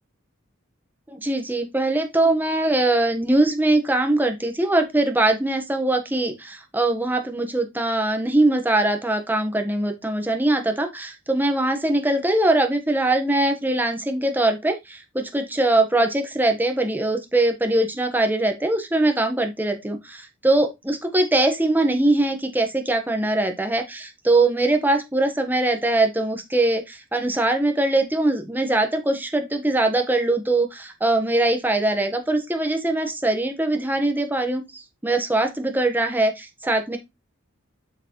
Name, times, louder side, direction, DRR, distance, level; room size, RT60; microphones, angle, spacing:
voice 1, 1.1-37.0, right 2 dB, 10° right, 1.4 m, -22 dB
7.7 x 6.0 x 3.2 m
head